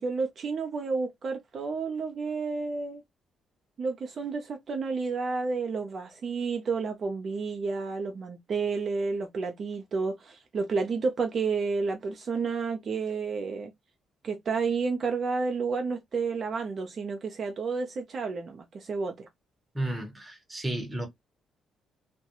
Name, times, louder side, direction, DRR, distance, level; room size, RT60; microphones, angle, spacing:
voice 1, 0.0-3.0 3.8-13.7 14.2-19.3, right 4 dB, 50° right, 0.5 m, -31 dB
voice 2, 19.7-21.1, right 1 dB, 15° right, 0.9 m, -32 dB
2.3 x 2.1 x 2.9 m
cardioid pair, 90°, 0 cm